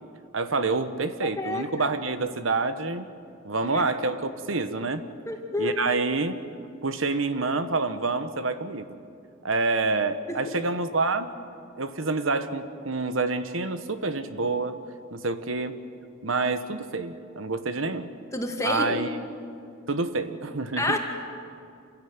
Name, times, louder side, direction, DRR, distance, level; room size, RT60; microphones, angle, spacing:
voice 1, 0.3-3.1 3.4-5.0 5.6-6.3 6.8-8.9 9.4-11.3 11.8-14.8 15.1-15.8 16.2-18.1 18.6-19.1 19.9-21.0, right 3 dB, 80° right, 10 dB, 1.2 m, -27 dB
voice 2, 1.4-1.9 3.7-3.8 5.3-5.8 10.3-10.6 18.3-19.0 20.8-21.0, left 2 dB, 15° left, 2 dB, 2.2 m, -29 dB
27.0 x 17.0 x 9.7 m, 2.5 s
head